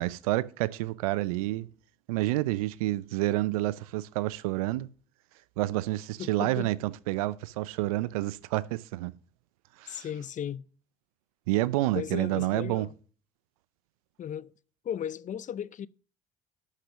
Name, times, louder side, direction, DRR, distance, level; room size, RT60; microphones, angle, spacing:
voice 1, 0.0-1.7 2.1-4.9 5.6-9.1 9.8-10.1 11.5-12.9, right 17 dB, 80° right, 0.5 m, -29 dB
voice 2, 6.2-6.7 9.9-10.6 11.9-12.9 14.2-14.5 14.8-15.9, left 9 dB, 45° left, 0.6 m, -35 dB
11.5 x 5.8 x 6.3 m
hypercardioid pair, 55°, 18 cm